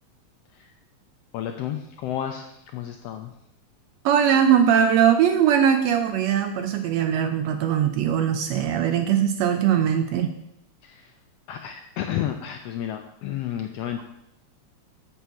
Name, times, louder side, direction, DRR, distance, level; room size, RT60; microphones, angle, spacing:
voice 1, 1.3-3.3 10.8-11.1 11.5-14.0, left 10 dB, 80° left, 5 dB, 1.4 m, -31 dB
voice 2, 4.0-10.3, right 9 dB, 80° right, 8 dB, 1.6 m, -20 dB
7.7 x 5.6 x 6.9 m, 0.80 s
omnidirectional pair, 3.4 m